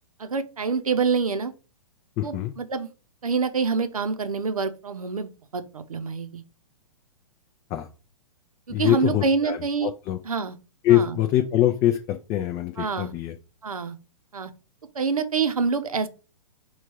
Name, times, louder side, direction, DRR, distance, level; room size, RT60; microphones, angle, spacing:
voice 1, 0.2-1.5 2.2-2.9 3.2-6.4 8.7-9.9 10.2-10.6 10.9-11.2 12.8-13.1 13.6-14.0 14.3-14.5 14.9-16.1, right 5 dB, 85° right, 0.6 m, -26 dB
voice 2, 2.2-2.5 7.7-7.9 8.7-10.2 10.8-13.4, left 12 dB, 25° left, 0.4 m, -23 dB
4.7 x 2.3 x 4.6 m
figure-of-eight pair, 120°, 18 cm